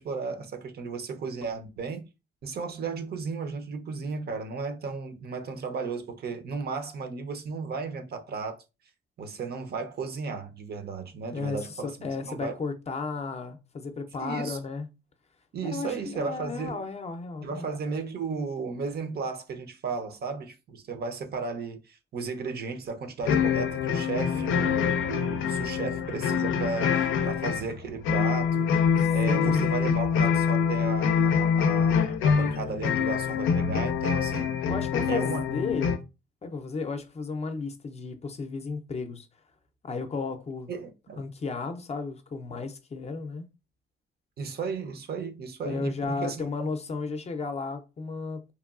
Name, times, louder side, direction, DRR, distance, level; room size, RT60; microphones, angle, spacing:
voice 1, 0.0-2.1 2.4-8.6 9.2-12.6 14.2-14.6 15.5-16.8 17.4-28.8 29.1-34.6 35.1-35.6 40.7-41.2 44.4-46.7, right 4 dB, 55° right, 0.6 m, -34 dB
voice 2, 11.3-14.9 15.6-17.7 24.3-24.8 29.0-29.8 34.7-36.0 36.4-39.3 39.8-40.7 41.2-43.5 45.6-48.5, left 4 dB, 35° left, 0.5 m, -34 dB
sound 1, 23.2-36.0, left 7 dB, 85° left, 0.4 m, -25 dB
2.9 x 2.2 x 2.4 m
cardioid pair, 90°, 20 cm